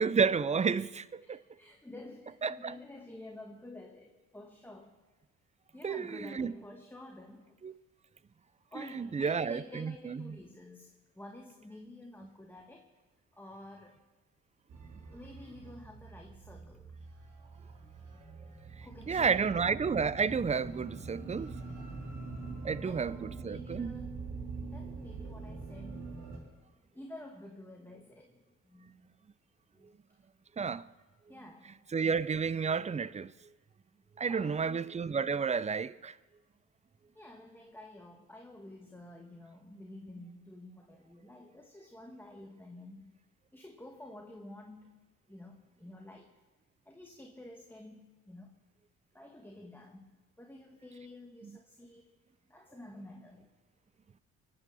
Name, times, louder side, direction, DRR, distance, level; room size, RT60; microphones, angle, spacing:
voice 1, 0.0-1.4 2.4-2.7 5.8-6.5 7.6-7.7 8.8-10.4 19.1-21.6 22.6-23.9 30.6-30.9 31.9-33.3 34.2-36.1 51.4-51.6, right 5 dB, 25° right, 0.5 m, -31 dB
voice 2, 1.3-5.0 5.7-7.6 8.7-12.9 13.3-14.0 15.1-17.0 18.8-19.6 22.7-24.3 24.6-26.2 26.7-29.2 29.7-29.9 31.3-31.7 34.2-35.0 37.1-43.2 43.5-45.0 45.3-46.4 46.8-48.5 49.1-52.2 52.5-53.5, left 1 dB, 5° left, 1.5 m, -50 dB
sound 1, 14.7-26.4, right 3 dB, 80° right, 3.5 m, -44 dB
24.0 x 8.7 x 6.2 m
cardioid pair, 90°, 30 cm